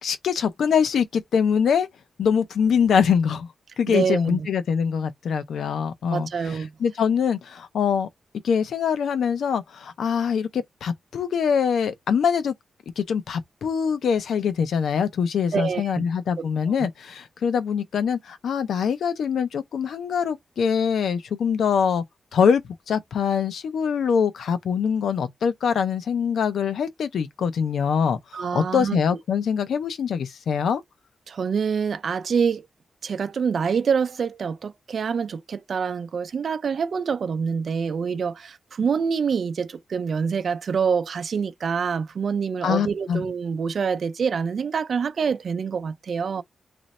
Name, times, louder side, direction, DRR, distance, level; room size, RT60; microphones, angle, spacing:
voice 1, 0.0-1.9 2.2-3.5 3.8-8.1 8.4-12.5 13.0-22.0 22.3-30.8 42.6-43.2, left 7 dB, 85° left, 0.7 m, -23 dB
voice 2, 3.9-4.5 6.1-6.7 15.5-16.0 16.4-16.7 28.3-29.0 31.3-32.7 33.0-46.4, right 6 dB, 60° right, 0.5 m, -26 dB
3.1 x 2.6 x 4.2 m
wide cardioid pair, 110°, 0 cm